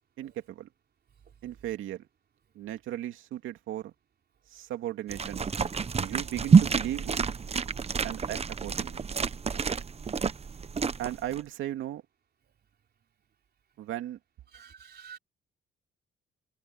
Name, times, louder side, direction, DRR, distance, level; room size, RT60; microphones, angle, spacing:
voice 1, 0.2-0.7 1.4-2.1 2.5-3.9 4.5-5.4 6.0-7.2 8.0-9.1 11.0-12.0 13.8-14.2, right 12 dB, 85° right, 2.6 m, -36 dB
sound 1, 5.1-11.4, right 5 dB, 30° right, 0.9 m, -27 dB
voice 2, 14.5-15.2, right 7 dB, 55° right, 4.1 m, -48 dB
cardioid pair, 90°, 20 cm